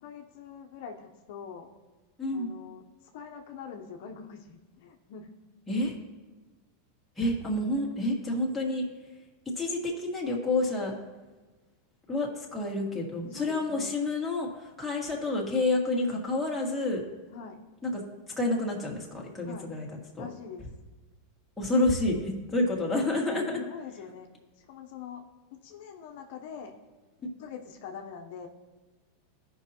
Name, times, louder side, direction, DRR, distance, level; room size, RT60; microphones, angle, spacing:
voice 1, 0.0-1.7 2.3-2.8 3.1-5.3 13.3-13.9 17.3-17.6 19.4-19.7 20.2-20.7 23.3-24.3 24.7-25.2 25.5-26.7 27.2-28.5, left 7 dB, 65° left, 3 dB, 0.8 m, -43 dB
voice 2, 2.2-2.5 5.7-5.9 7.2-8.8 9.6-10.9 12.1-17.0 17.8-18.0 18.4-19.9 20.2-20.3 21.6-23.6, left 2 dB, 5° left, -3 dB, 2.0 m, -29 dB
14.5 x 5.5 x 2.9 m, 1.2 s
supercardioid pair, 125°, 0 cm